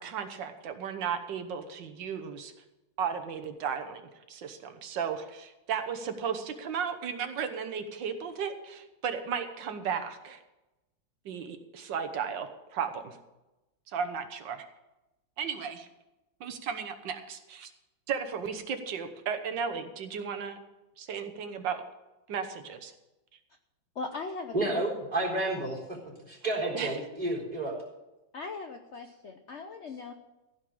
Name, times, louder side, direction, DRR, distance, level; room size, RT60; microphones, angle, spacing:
voice 1, 0.0-2.5 3.0-4.0 4.3-10.4 11.3-13.2 13.9-14.7 15.4-15.9 16.4-17.7 18.1-20.6 21.0-21.8 22.3-22.9 26.7-26.9, right 7 dB, 65° right, 7 dB, 1.7 m, -35 dB
voice 2, 23.9-24.8 25.2-25.3 28.3-30.1, left 3 dB, 60° left, 6 dB, 0.7 m, -39 dB
voice 3, 24.5-25.8 26.3-27.7, right 2 dB, 20° right, -4 dB, 4.3 m, -30 dB
15.5 x 5.4 x 8.6 m, 1.0 s
omnidirectional pair, 2.2 m